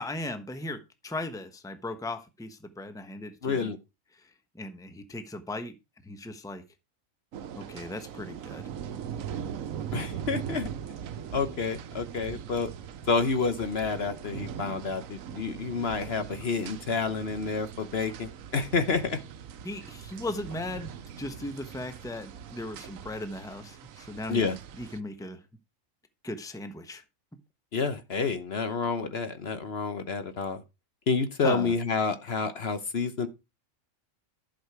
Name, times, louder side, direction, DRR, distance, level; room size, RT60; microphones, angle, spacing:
voice 1, 0.0-3.7 4.1-4.3 4.5-5.7 6.0-6.6 7.5-8.6 19.6-24.4 24.8-25.4 26.2-27.0 31.4-31.7, left 2 dB, 5° left, 1.0 m, -37 dB
voice 2, 3.4-3.8 9.9-10.7 11.3-12.7 13.1-19.2 24.3-24.5 27.7-30.6 31.1-33.3, left 4 dB, 55° left, 1.2 m, -29 dB
sound 1, 7.3-25.0, right 8 dB, 85° right, 1.2 m, -41 dB
11.5 x 6.5 x 4.7 m
omnidirectional pair, 1.4 m